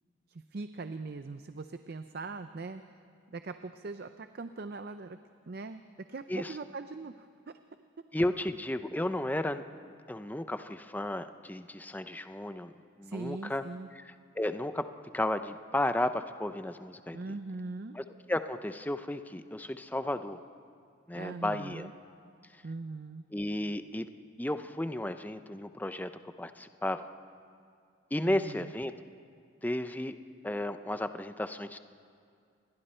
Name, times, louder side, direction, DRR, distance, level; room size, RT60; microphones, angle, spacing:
voice 1, 0.3-3.0 3.3-5.2 5.5-7.3 13.0-13.9 17.1-18.0 21.1-21.9 22.6-23.2 28.2-28.7, right 3 dB, 50° right, 9 dB, 0.5 m, -41 dB
voice 2, 8.1-9.6 10.1-12.7 13.0-13.6 14.0-14.9 15.1-17.2 17.9-20.4 21.1-21.9 23.3-24.1 24.4-26.1 26.4-27.1 28.1-28.9 29.6-30.1 30.4-31.8, left 1 dB, 10° left, 10 dB, 0.5 m, -33 dB
28.5 x 22.0 x 4.4 m, 2.3 s
head